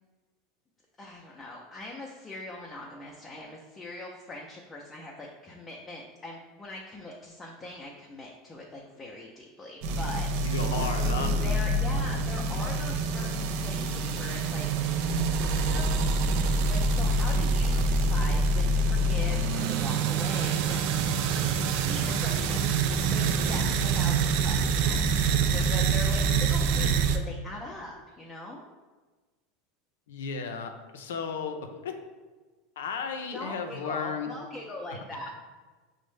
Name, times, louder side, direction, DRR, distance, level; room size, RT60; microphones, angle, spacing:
voice 1, 1.0-10.5 11.3-21.0 21.3-21.4 21.7-28.7 33.3-35.3, left 2 dB, 20° left, -2 dB, 0.5 m, -41 dB
sound 1, 9.8-27.2, right 3 dB, 65° right, 0.3 m, -26 dB
voice 2, 10.3-11.4 30.1-32.0 32.8-34.3, left 5 dB, 90° left, 5 dB, 0.4 m, -34 dB
5.1 x 2.1 x 3.2 m, 1.3 s
supercardioid pair, 115°, 0 cm